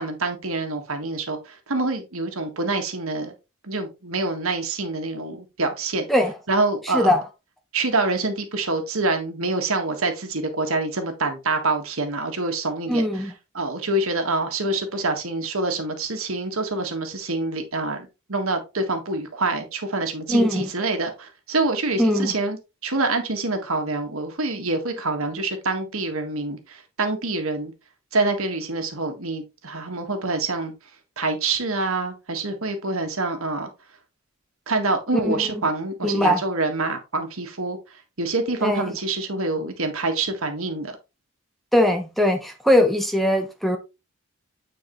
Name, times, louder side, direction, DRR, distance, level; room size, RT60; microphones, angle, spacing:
voice 1, 0.0-3.3 3.6-6.1 6.5-7.1 7.7-22.6 22.8-27.7 28.1-30.7 31.2-33.7 34.7-37.8 38.2-40.9, right 3 dB, 65° right, 1.6 m, -26 dB
voice 2, 12.9-13.3 20.3-20.7 22.0-22.3 35.2-35.3 36.0-36.4 38.6-38.9 41.7-43.8, left 1 dB, ahead, 0.8 m, -20 dB
9.2 x 4.7 x 3.1 m
head